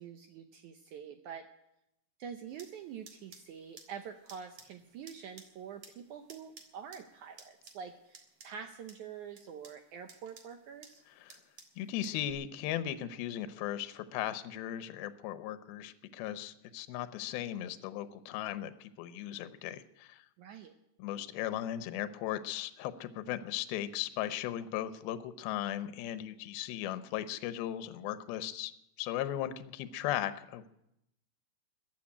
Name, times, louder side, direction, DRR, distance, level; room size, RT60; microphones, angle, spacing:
voice 1, 0.0-1.5 2.2-11.0 20.4-20.7, right 7 dB, 80° right, 6 dB, 1.8 m, -46 dB
sound 1, 2.5-12.3, right 4 dB, 45° right, 2.2 m, -58 dB
voice 2, 11.8-20.2 21.0-28.7 29.0-30.7, left 12 dB, 80° left, 11 dB, 2.6 m, -37 dB
15.0 x 7.9 x 9.9 m, 0.82 s
omnidirectional pair, 4.4 m